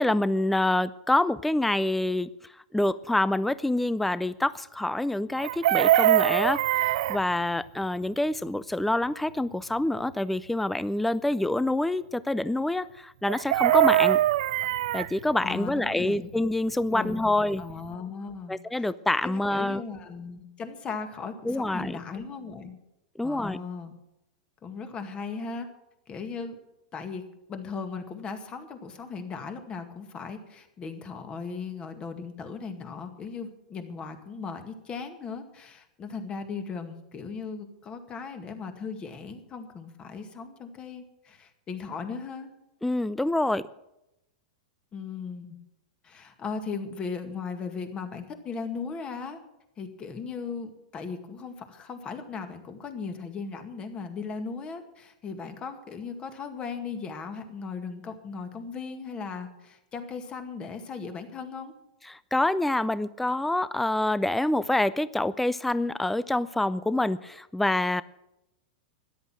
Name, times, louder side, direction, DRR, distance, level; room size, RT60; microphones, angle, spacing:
voice 1, 0.0-2.3 2.7-14.2 14.9-17.6 18.5-19.8 21.5-22.0 23.2-23.6 42.8-43.6 62.1-68.0, left 1 dB, 5° left, 17 dB, 0.4 m, -26 dB
Chicken rooster, 5.4-7.2 13.3-15.1 17.3-17.4 17.7-17.9, right 14 dB, 65° right, 0.4 m, -22 dB
voice 2, 15.4-16.3 16.9-18.9 19.2-22.8 23.2-23.9 24.6-25.7 26.1-26.6 26.9-42.5 44.9-45.6 46.0-49.4 49.8-61.7, left 5 dB, 25° left, 7 dB, 2.0 m, -37 dB
13.0 x 11.0 x 6.2 m, 0.88 s
hypercardioid pair, 125°, 4 cm